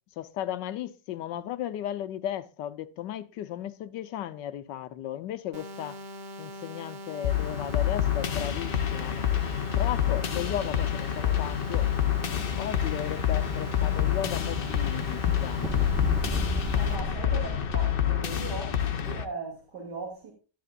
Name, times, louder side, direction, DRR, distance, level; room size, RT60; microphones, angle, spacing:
voice 1, 0.2-6.0 6.4-9.3 9.7-11.9 12.5-15.8 17.3-17.4, left 11 dB, 85° left, 1.4 m, -35 dB
sound 1, 5.5-17.0, left 1 dB, 50° right, 0.8 m, -42 dB
sound 2, 7.2-19.2, left 10 dB, 50° left, 0.6 m, -28 dB
Explosion, 13.6-18.0, left 1 dB, 5° left, 0.4 m, -35 dB
voice 2, 16.7-18.8 19.0-20.3, right 3 dB, 75° right, 3.2 m, -38 dB
13.0 x 10.5 x 2.4 m
omnidirectional pair, 1.9 m